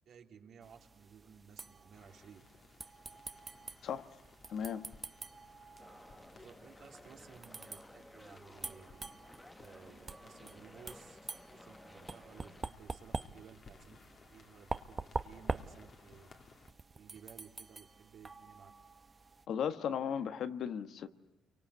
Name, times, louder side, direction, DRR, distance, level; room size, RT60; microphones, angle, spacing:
voice 1, 0.1-2.5 6.3-9.0 9.6-14.0 14.3-16.3 16.9-18.7, right 7 dB, 70° right, 3 dB, 2.7 m, -57 dB
sound 1, 0.6-19.5, right 3 dB, 30° right, 0.9 m, -46 dB
sound 2, 1.9-16.7, left 4 dB, 50° left, 2.3 m, -61 dB
voice 2, 4.5-4.8 19.5-21.1, left 8 dB, 70° left, 9 dB, 1.3 m, -36 dB
sound 3, 5.8-12.6, left 1 dB, 15° left, 1.2 m, -56 dB
29.0 x 24.0 x 8.3 m, 0.94 s
cardioid pair, 90°, 0 cm